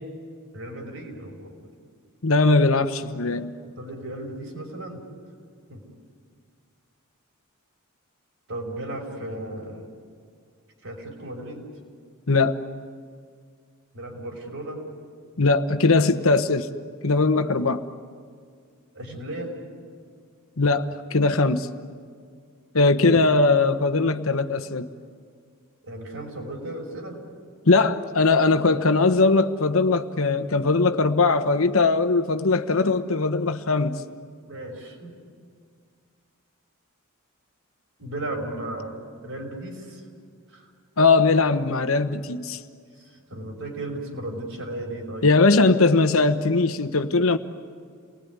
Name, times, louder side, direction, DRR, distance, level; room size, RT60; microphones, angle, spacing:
voice 1, 0.5-1.7 3.8-5.0 5.7-5.8 8.5-9.9 10.8-11.6 13.9-14.8 18.9-19.5 23.1-23.3 25.8-27.2 34.5-35.2 38.0-40.0 40.5-40.7 43.0-45.3, right 1 dB, 65° right, 5.5 m, -35 dB
voice 2, 2.2-3.5 12.3-12.6 15.4-16.7 17.0-17.8 20.6-21.7 22.7-24.9 27.7-34.0 41.0-42.6 45.2-47.4, left 3 dB, 65° left, 1.1 m, -20 dB
29.5 x 20.0 x 9.6 m
head